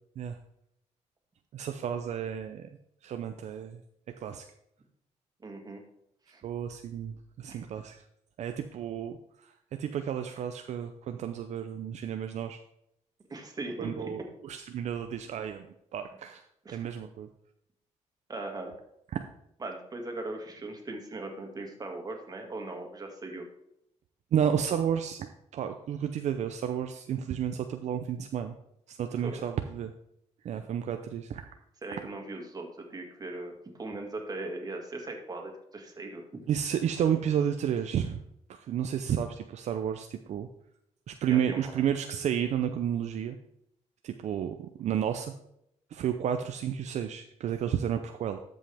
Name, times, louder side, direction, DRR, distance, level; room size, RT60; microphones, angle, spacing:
voice 1, 1.5-2.7 3.0-3.8 4.2-4.4 6.4-8.0 8.4-9.5 9.8-12.6 13.8-15.7 15.9-17.3 19.1-19.2 24.3-25.3 25.5-28.5 28.9-29.9 30.4-31.5 36.5-38.2 38.5-40.5 41.1-43.4 44.0-45.3 45.9-48.4, right 9 dB, 65° right, 7 dB, 0.6 m, -31 dB
voice 2, 5.4-5.8 6.3-6.4 7.5-7.6 13.3-14.1 16.7-16.9 18.3-18.7 19.6-23.5 29.2-29.5 31.8-36.4 41.3-41.7, right 2 dB, 30° right, 3 dB, 2.1 m, -39 dB
13.0 x 5.4 x 3.5 m, 0.76 s
cardioid pair, 95°, 13 cm